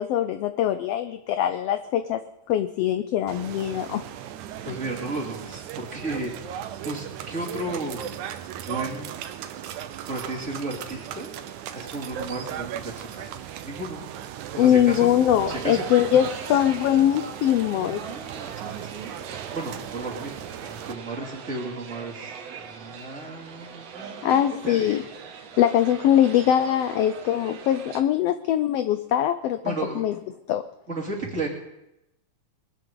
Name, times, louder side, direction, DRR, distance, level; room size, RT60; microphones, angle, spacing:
voice 1, 0.0-2.2 2.5-4.0 14.6-18.0 24.2-25.0 25.6-29.6 30.0-30.1 30.5-30.6, left 11 dB, 80° left, 10 dB, 1.4 m, -22 dB
sound 1, 3.3-20.9, right 10 dB, 90° right, 2.2 m, -37 dB
voice 2, 4.6-6.3 6.8-8.0 8.7-9.1 10.1-11.3 11.7-13.3 13.6-14.0 14.5-15.1 15.5-15.8 17.8-19.1 19.5-25.1 29.6-30.0 30.9-31.5, right 2 dB, 25° right, -3 dB, 2.9 m, -34 dB
sound 2, 15.4-28.0, right 6 dB, 65° right, 2.2 m, -40 dB
22.0 x 12.0 x 3.9 m, 0.88 s
omnidirectional pair, 3.3 m